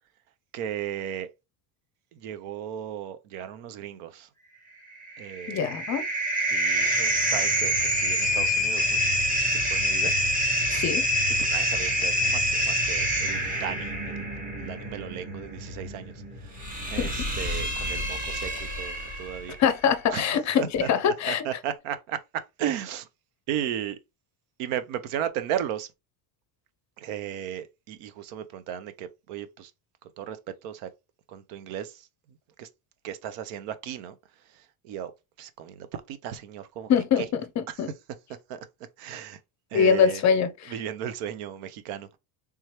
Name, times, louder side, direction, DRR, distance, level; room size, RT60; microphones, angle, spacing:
voice 1, 0.5-1.3 2.1-4.3 5.2-5.7 6.5-9.1 9.5-10.1 10.6-10.7 11.4-14.3 14.6-16.1 16.4-16.6 16.9-19.6 20.1-23.1 23.5-24.0 24.6-25.9 27.0-29.7 30.2-30.4 30.6-30.9 31.3-32.1 32.6-32.7 33.0-34.2 34.5-35.1 35.4-36.9 37.2-37.3 38.5-38.6 39.0-39.4 39.7-40.2 40.7-42.2, right 10 dB, 80° right, 0.8 m, -35 dB
sound 1, 5.0-19.5, equal, 15° right, 1.2 m, -27 dB
voice 2, 5.5-6.0 10.7-11.0 17.0-17.3 19.6-21.4 36.9-37.9 39.7-40.7, left 7 dB, 35° left, 0.6 m, -24 dB
3.4 x 3.2 x 3.0 m
cardioid pair, 140°, 49 cm